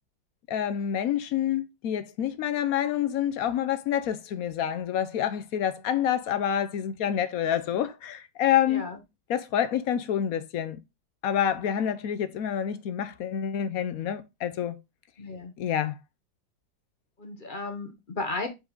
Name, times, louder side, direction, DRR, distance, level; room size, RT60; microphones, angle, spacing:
voice 1, 0.5-8.8 9.3-10.8 11.2-14.8 15.6-16.0, left 10 dB, 65° left, 0.9 m, -27 dB
voice 2, 8.7-9.0 15.2-15.5 17.2-18.5, left 2 dB, 30° left, 1.2 m, -34 dB
6.6 x 5.0 x 3.7 m
omnidirectional pair, 2.0 m